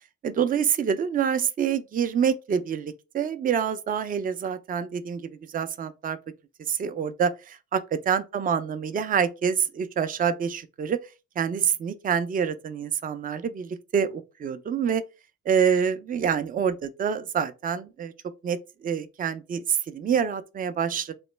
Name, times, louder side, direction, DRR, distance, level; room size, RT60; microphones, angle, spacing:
voice 1, 0.2-6.2 6.7-11.0 11.4-15.0 15.5-18.1 18.4-21.1, right 7 dB, 30° right, 0.4 m, -26 dB
3.1 x 2.2 x 3.1 m
cardioid pair, 90°, 30 cm